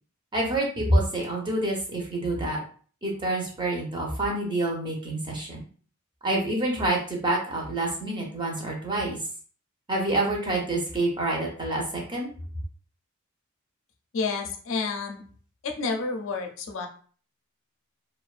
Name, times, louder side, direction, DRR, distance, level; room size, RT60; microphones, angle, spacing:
voice 1, 0.3-2.6 3.0-5.6 6.2-9.2 9.9-12.3, right 1 dB, 20° right, -1 dB, 0.5 m, -27 dB
voice 2, 14.1-15.2 15.6-16.9, left 4 dB, 60° left, 3 dB, 0.4 m, -30 dB
2.4 x 2.1 x 2.4 m, 0.43 s
head